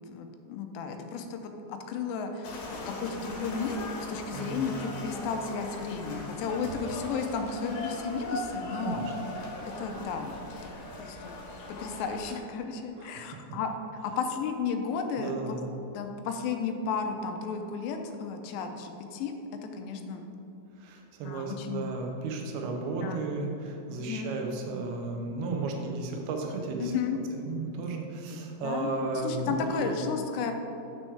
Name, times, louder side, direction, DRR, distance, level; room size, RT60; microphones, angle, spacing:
voice 1, 0.1-9.0 9.6-11.4 11.7-13.7 14.0-15.6 15.9-20.3 21.2-21.9 23.0-23.3 24.0-24.3 26.8-27.2 27.9-30.5, left 5 dB, 90° left, 5 dB, 2.8 m, -34 dB
sound 1, 2.4-12.4, left 1 dB, 70° left, 3.0 m, -39 dB
voice 2, 4.3-4.7 8.8-9.1 13.0-13.4 15.2-15.6 20.8-26.9 27.4-30.0, right 3 dB, 75° right, 2 dB, 2.6 m, -34 dB
9.3 x 6.2 x 3.3 m, 2.9 s
omnidirectional pair, 4.9 m